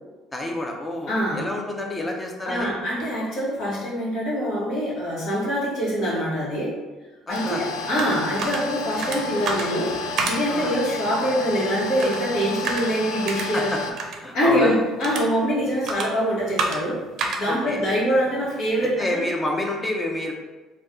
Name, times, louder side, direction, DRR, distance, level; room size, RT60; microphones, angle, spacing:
voice 1, 0.3-2.7 7.3-7.6 10.5-10.8 13.5-13.8 14.2-14.7 17.4-17.9 19.0-20.3, left 1 dB, 20° left, 0 dB, 0.6 m, -28 dB
voice 2, 1.1-1.4 2.5-6.7 7.3-10.0 10.3-13.7 14.3-17.0 17.4-19.2, equal, 65° left, -5 dB, 1.2 m, -24 dB
sound 1, 7.3-13.9, left 3 dB, 90° left, 0.3 m, -31 dB
sound 2, 7.4-19.0, right 3 dB, 65° right, 0.5 m, -33 dB
2.5 x 2.4 x 3.6 m, 1.2 s
supercardioid pair, 70°, 0 cm